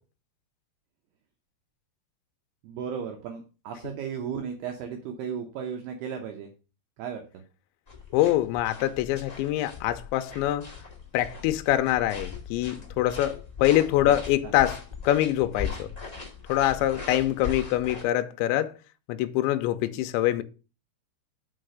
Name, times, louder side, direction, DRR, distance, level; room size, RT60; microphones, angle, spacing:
voice 1, 2.6-6.5 7.0-7.2 14.0-14.2 14.4-14.5, right 7 dB, 80° right, 2.3 m, -35 dB
sound 1, 7.9-18.0, left 5 dB, 55° left, 0.4 m, -39 dB
voice 2, 8.1-10.7 11.1-15.9 16.5-18.7 19.1-20.4, left 13 dB, 85° left, 2.7 m, -25 dB
6.1 x 5.7 x 6.3 m
omnidirectional pair, 5.8 m